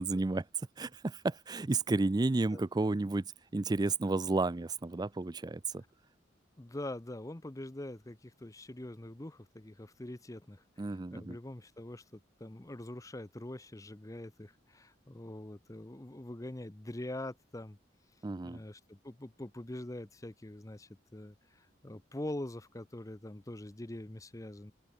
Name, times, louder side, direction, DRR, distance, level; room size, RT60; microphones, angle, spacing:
voice 1, 0.0-5.8 10.8-11.4 18.2-18.6, right 3 dB, 20° right, 0.4 m, -32 dB
voice 2, 6.6-17.8 18.4-24.7, left 1 dB, 20° left, 0.8 m, -44 dB
open air
head